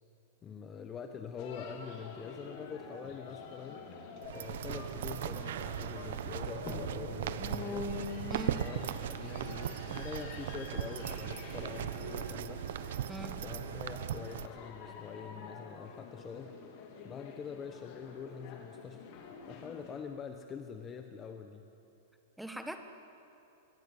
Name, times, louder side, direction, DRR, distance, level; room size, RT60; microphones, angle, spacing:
voice 1, 0.4-3.9 4.3-7.9 8.6-12.7 13.4-16.6 17.0-19.0 19.5-21.7, left 6 dB, 15° left, 6 dB, 0.9 m, -45 dB
sound 1, 1.4-20.0, left 4 dB, 35° left, 3.1 m, -46 dB
sound 2, 4.2-14.5, right 10 dB, 60° right, 1.0 m, -38 dB
voice 2, 13.1-13.4 22.4-22.8, equal, ahead, 6 dB, 1.3 m, -41 dB
25.0 x 21.5 x 8.4 m, 2.8 s
supercardioid pair, 170°, 0 cm